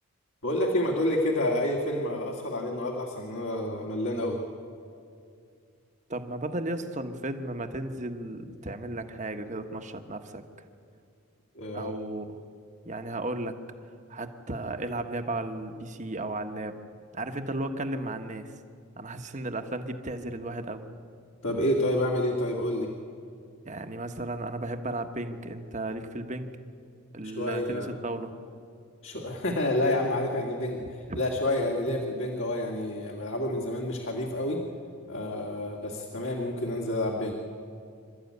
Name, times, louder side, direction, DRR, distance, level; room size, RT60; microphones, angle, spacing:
voice 1, 0.4-4.4 11.5-12.0 21.4-22.9 27.2-27.9 29.0-34.6 35.1-37.3, left 1 dB, 60° left, -1 dB, 2.2 m, -29 dB
voice 2, 6.1-10.4 11.7-12.3 12.8-13.6 14.1-16.8 17.1-18.5 19.0-20.8 23.6-26.5 27.1-28.3 30.8-31.2, right 2 dB, 35° right, 7 dB, 1.3 m, -34 dB
27.5 x 13.5 x 9.5 m, 2.4 s
head